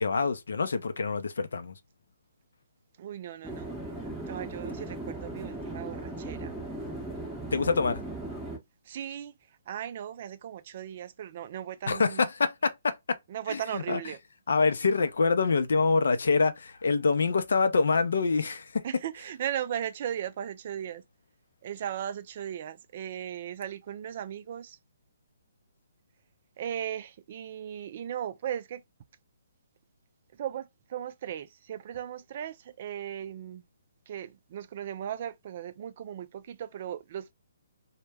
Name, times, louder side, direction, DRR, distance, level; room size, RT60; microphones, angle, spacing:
voice 1, 0.0-1.8 7.5-8.0 11.9-13.2 13.5-14.0 14.5-18.8, left 4 dB, 70° left, 0.5 m, -26 dB
voice 2, 3.0-3.7 4.3-6.5 8.9-9.3 9.7-12.3 13.3-14.2 18.8-21.0 21.6-24.8 26.6-28.8 30.4-33.6 34.1-37.3, right 10 dB, 45° right, 0.3 m, -37 dB
sound 1, 3.4-8.6, right 2 dB, ahead, 0.7 m, -38 dB
2.1 x 2.1 x 3.3 m
hypercardioid pair, 145°, 0 cm